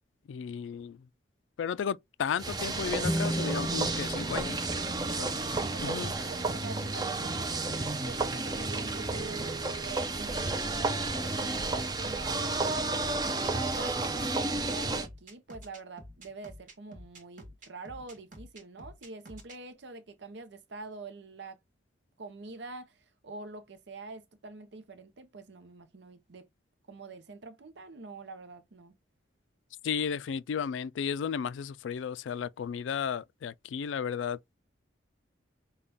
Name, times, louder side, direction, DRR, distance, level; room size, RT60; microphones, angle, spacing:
voice 1, 0.3-1.0 1.6-4.6 5.1-5.5 5.8-6.1 29.8-34.6, left 7 dB, 85° left, 0.3 m, -34 dB
sound 1, 2.4-15.1, right 3 dB, 20° right, 0.5 m, -32 dB
sound 2, 3.0-6.3, equal, 25° left, 0.7 m, -36 dB
voice 2, 5.0-7.6 7.9-12.9 13.5-21.6 22.2-26.5 26.9-29.0, right 3 dB, 70° right, 0.7 m, -45 dB
sound 3, 12.2-19.6, equal, 45° right, 1.3 m, -49 dB
5.5 x 2.3 x 3.4 m
head